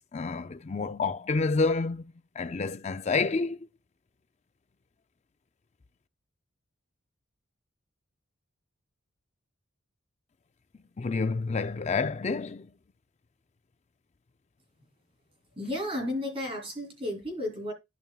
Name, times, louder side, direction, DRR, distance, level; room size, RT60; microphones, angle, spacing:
voice 1, 0.1-2.0 2.4-3.7 11.0-12.7, left 4 dB, 30° left, 0.4 m, -28 dB
voice 2, 15.6-17.7, left 1 dB, 25° right, 3.0 m, -33 dB
12.0 x 5.3 x 2.3 m
head